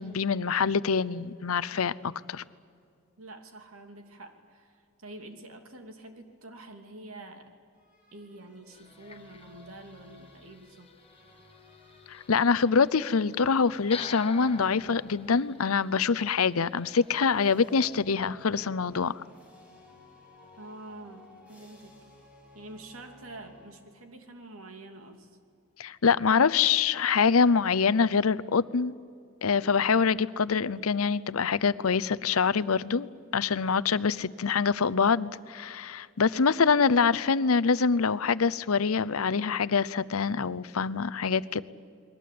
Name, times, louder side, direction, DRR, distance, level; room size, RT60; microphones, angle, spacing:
voice 1, 0.0-1.9 2.3-2.4 12.1-19.2 25.8-28.9 29.4-41.6, left 5 dB, 90° left, 15 dB, 0.7 m, -25 dB
voice 2, 3.2-7.5 8.1-10.9 20.6-21.9 22.5-25.4, right 2 dB, 85° right, 5 dB, 2.8 m, -47 dB
sound 1, 7.7-15.6 16.2-24.1, left 1 dB, 5° right, 6.7 m, -56 dB
sound 2, 8.7-17.2, left 5 dB, 30° left, 1.1 m, -48 dB
29.5 x 21.5 x 8.6 m, 2.3 s
head